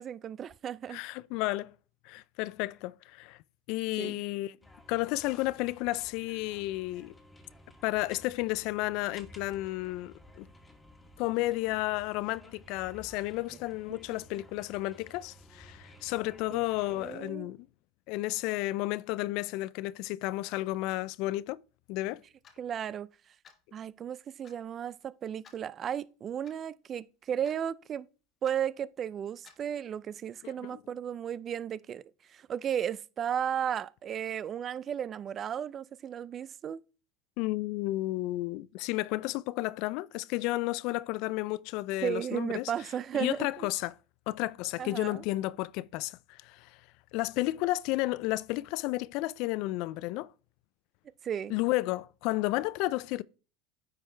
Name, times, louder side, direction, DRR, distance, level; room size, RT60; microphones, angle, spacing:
voice 1, 0.0-1.0 4.0-4.2 13.9-14.0 16.5-16.6 16.9-17.5 22.6-23.1 23.7-28.1 28.4-32.0 32.3-36.8 42.0-43.7 44.8-45.2 51.2-51.5, right 9 dB, 35° right, 0.4 m, -34 dB
voice 2, 0.9-1.7 2.1-3.4 3.7-4.6 4.9-7.1 7.8-10.5 11.2-17.7 18.1-21.6 21.9-22.2 30.7-30.8 37.4-42.7 43.1-44.0 44.3-46.7 47.1-50.3 51.5-53.2, left 19 dB, 60° left, 0.3 m, -32 dB
sound 1, 4.6-17.1, left 1 dB, 10° left, 1.6 m, -55 dB
Clock, 22.4-22.6 23.4-23.7 24.4-24.6 25.4-25.6 26.4-26.6 27.4-27.7 28.4-28.6 29.4-29.7, left 6 dB, 35° left, 1.4 m, -56 dB
9.3 x 4.9 x 3.3 m
hypercardioid pair, 95°, 0 cm